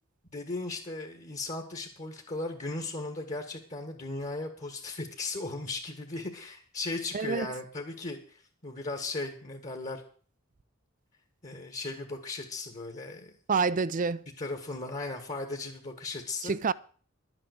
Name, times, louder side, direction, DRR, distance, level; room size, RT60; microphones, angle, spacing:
voice 1, 0.3-10.0 11.4-13.3 14.4-16.5, left 2 dB, 35° left, 1.6 m, -37 dB
voice 2, 7.1-7.5 13.5-14.3 16.4-16.7, right 5 dB, 40° right, 0.5 m, -27 dB
11.5 x 8.9 x 6.5 m
head